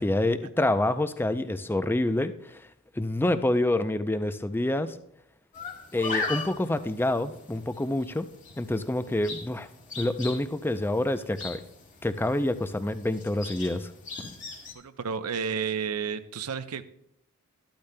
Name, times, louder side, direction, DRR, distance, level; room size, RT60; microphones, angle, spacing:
voice 1, 0.0-2.6 3.0-5.0 5.9-8.3 8.6-9.7 10.0-11.6 12.0-13.9, left 1 dB, 10° left, 11 dB, 0.4 m, -27 dB
sound 1, 5.5-14.7, left 4 dB, 35° left, 2.0 m, -39 dB
voice 2, 14.7-16.8, right 6 dB, 90° right, 10 dB, 0.7 m, -31 dB
13.5 x 12.0 x 2.2 m, 0.78 s
head